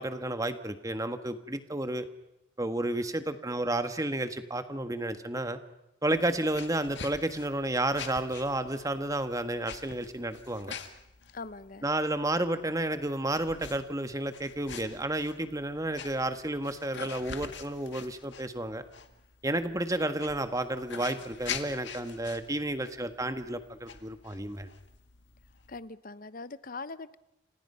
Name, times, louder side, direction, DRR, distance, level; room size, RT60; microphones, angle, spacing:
voice 1, 0.0-2.1 2.6-5.6 6.0-10.7 11.8-18.8 19.4-24.7, right 1 dB, 15° right, 9 dB, 1.5 m, -31 dB
sound 1, 6.1-25.8, left 6 dB, 65° left, 2.0 m, -46 dB
voice 2, 11.3-11.9 25.7-27.2, left 3 dB, 45° left, 15 dB, 0.9 m, -41 dB
30.0 x 26.5 x 5.7 m, 0.88 s
head